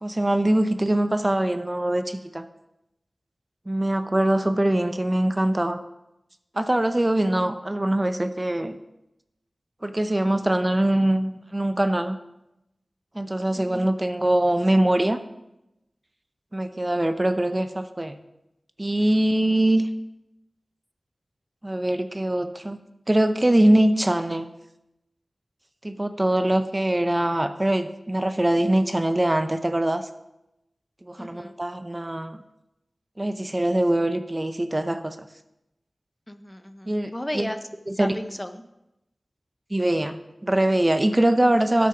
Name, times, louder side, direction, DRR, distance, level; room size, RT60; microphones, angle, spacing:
voice 1, 0.0-2.4 3.7-5.8 6.5-8.8 9.8-12.2 13.1-15.2 16.5-18.2 18.8-19.9 21.6-22.8 23.1-24.5 25.8-30.1 31.1-32.4 33.2-35.2 36.9-37.5 37.9-38.2 39.7-40.2 40.4-41.9, right 1 dB, 25° right, 10 dB, 0.6 m, -23 dB
voice 2, 13.5-13.9 31.2-31.6 36.3-37.6 37.9-38.6, left 1 dB, 15° left, 9 dB, 0.6 m, -35 dB
9.1 x 6.3 x 5.8 m, 0.89 s
wide cardioid pair, 55°, 0 cm